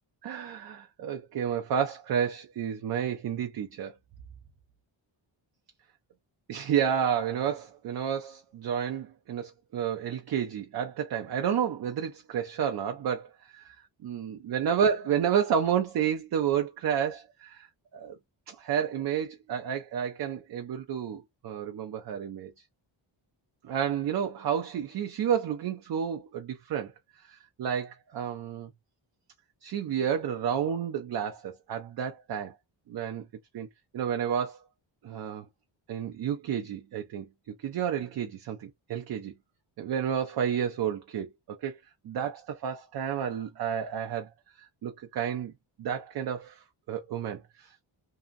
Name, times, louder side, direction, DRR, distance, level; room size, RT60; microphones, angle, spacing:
voice 1, 0.2-3.9 6.5-13.8 14.0-17.7 17.9-18.2 18.5-22.5 23.6-26.9 27.2-28.7 29.6-32.6 32.9-33.3 33.5-33.7 33.9-34.6 35.0-35.4 35.9-37.3 37.6-39.3 39.8-41.8 42.0-44.3 44.8-45.5 45.8-47.7, right 8 dB, 50° right, 0.5 m, -30 dB
2.7 x 2.5 x 2.4 m
wide cardioid pair, 165°, 49 cm